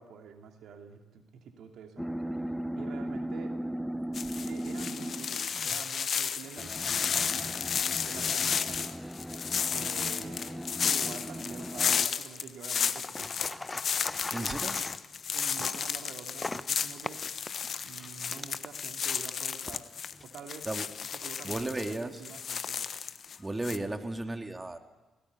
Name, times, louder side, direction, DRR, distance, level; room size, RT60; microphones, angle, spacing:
voice 1, 0.0-3.6 4.4-7.6 8.0-9.0 9.7-13.6 13.9-14.7 15.3-17.2 17.8-19.9 20.2-20.7 21.2-22.9, right 6 dB, 65° right, 4 dB, 2.7 m, -47 dB
sound 1, 2.0-5.5 6.6-12.1, right 1 dB, ahead, 0.9 m, -37 dB
sound 2, 4.1-23.4 23.6-23.8, left 7 dB, 55° left, 1.2 m, -33 dB
sound 3, 13.0-18.7 19.5-20.3, left 2 dB, 20° left, 1.1 m, -40 dB
voice 2, 14.3-14.8 17.6-17.7 20.6-20.9 21.4-22.2 23.4-24.8, right 2 dB, 20° right, 5 dB, 2.6 m, -35 dB
28.5 x 18.5 x 9.5 m, 1.2 s
hypercardioid pair, 40°, 0 cm